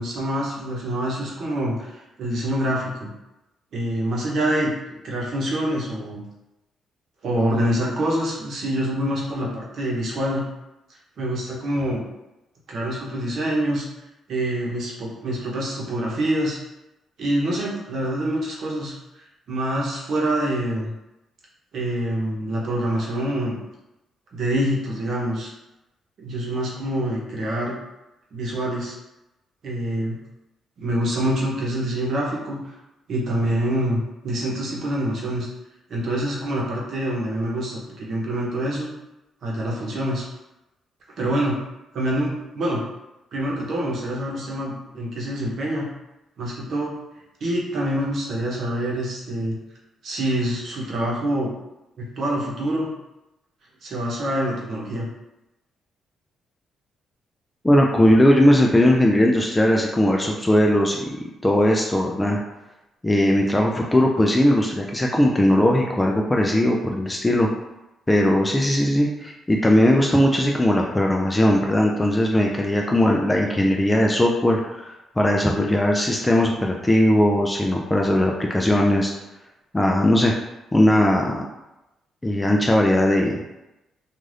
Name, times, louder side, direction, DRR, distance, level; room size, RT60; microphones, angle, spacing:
voice 1, 0.0-3.1 3.7-6.2 7.2-10.4 11.2-12.0 12.7-13.8 14.3-16.6 17.2-18.9 19.5-20.9 21.7-23.6 24.3-25.5 26.2-27.7 28.3-28.9 29.6-30.2 30.8-32.6 33.1-35.5 35.9-38.9 39.4-40.2 41.2-41.6 41.9-42.8 43.3-45.9 46.4-46.9 47.4-49.6 50.0-51.5 52.0-52.9 53.8-55.0, right 1 dB, 60° right, -3 dB, 0.9 m, -25 dB
voice 2, 57.6-62.4 63.0-67.5 68.1-79.1 79.7-80.3 80.7-81.4 82.2-83.4, left 1 dB, 15° left, 0 dB, 0.3 m, -19 dB
2.5 x 2.4 x 3.3 m, 0.96 s
cardioid pair, 90°, 0 cm